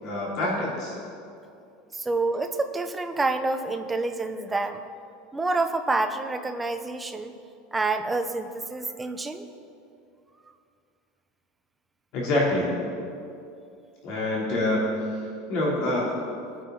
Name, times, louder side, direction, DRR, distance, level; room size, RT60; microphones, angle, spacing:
voice 1, 0.0-0.9 12.1-12.7 14.0-15.1 15.5-16.0, left 1 dB, 45° left, -5 dB, 3.1 m, -26 dB
voice 2, 1.9-4.8 5.3-7.3 7.7-9.5, right 3 dB, 10° right, 6 dB, 0.6 m, -28 dB
20.5 x 9.8 x 3.9 m, 2.5 s
supercardioid pair, 175°, 0 cm